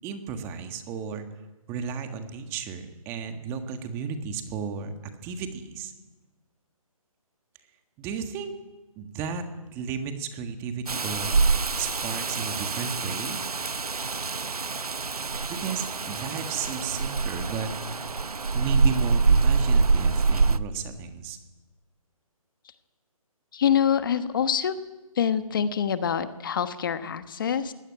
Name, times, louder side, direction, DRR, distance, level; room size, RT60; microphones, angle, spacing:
voice 1, 0.0-1.3 1.7-4.9 5.2-5.9 8.0-8.5 8.9-9.5 9.7-11.4 11.7-13.4 15.5-17.7 18.5-21.4, right 6 dB, 15° right, 7 dB, 1.5 m, -33 dB
Rain, 10.9-20.6, right 4 dB, 90° right, 1.0 m, -25 dB
voice 2, 23.5-24.7 25.1-27.7, left 8 dB, 35° left, 11 dB, 1.2 m, -25 dB
21.5 x 17.0 x 9.8 m, 1.1 s
hypercardioid pair, 160°, 19 cm